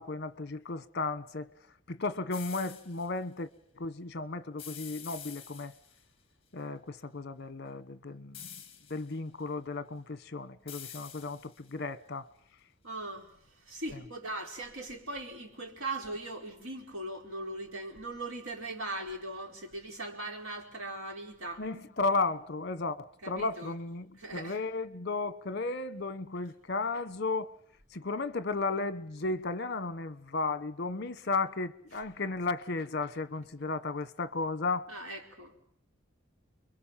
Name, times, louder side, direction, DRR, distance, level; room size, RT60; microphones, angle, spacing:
voice 1, 0.0-1.5 1.9-3.5 3.7-5.7 6.5-8.5 8.9-12.3 13.9-14.0 21.6-27.5 27.9-34.9, left 3 dB, 50° left, 1.1 m, -34 dB
sound 1, 2.3-3.1 4.6-6.0 8.3-9.1 10.7-11.7, left 9 dB, 25° left, 2.3 m, -47 dB
voice 2, 12.8-13.3 13.7-21.6 23.2-23.7 24.2-24.6 34.9-35.5, right 2 dB, 80° right, 4.9 m, -39 dB
29.5 x 22.5 x 7.4 m
head